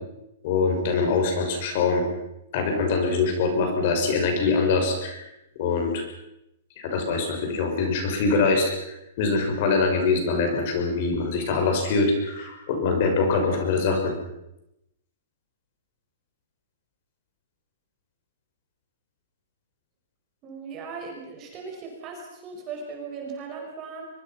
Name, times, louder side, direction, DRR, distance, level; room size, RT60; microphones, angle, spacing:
voice 1, 0.4-2.0 2.5-5.2 5.6-6.0 6.8-8.7 9.2-14.1, left 4 dB, 40° left, 4 dB, 6.3 m, -23 dB
voice 2, 20.4-24.1, right 5 dB, 20° right, 1 dB, 5.7 m, -38 dB
24.0 x 23.5 x 6.0 m, 0.87 s
hypercardioid pair, 170°, 0 cm